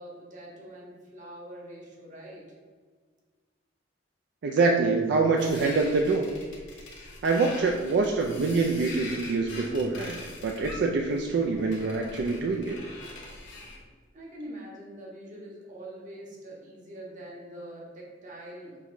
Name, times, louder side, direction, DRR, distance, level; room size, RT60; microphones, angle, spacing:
voice 1, 0.0-2.5 14.1-18.8, right 1 dB, 45° right, -4 dB, 1.0 m, -44 dB
voice 2, 4.4-6.3 7.2-12.8, right 3 dB, 65° right, 1 dB, 0.3 m, -25 dB
sound 1, 5.4-13.8, left 2 dB, 75° left, 1.2 m, -43 dB
6.1 x 2.9 x 2.6 m, 1.5 s
head